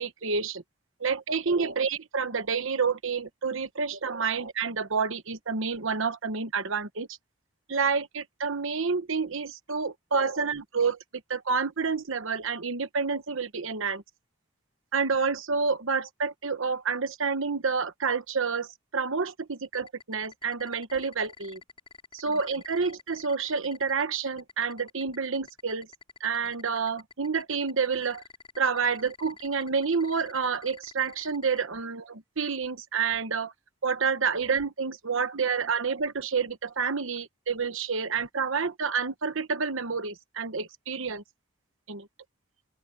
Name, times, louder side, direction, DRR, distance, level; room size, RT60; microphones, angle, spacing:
voice 1, 0.0-0.6 1.0-7.2 7.7-11.0 11.3-14.0 14.9-18.7 18.9-21.6 22.1-25.9 26.2-28.2 28.6-33.5 33.8-41.2 41.9-42.1, right 5 dB, 65° right, 1.1 m, -29 dB
sound 1, 19.6-31.6, left 5 dB, 25° left, 6.6 m, -48 dB
open air
head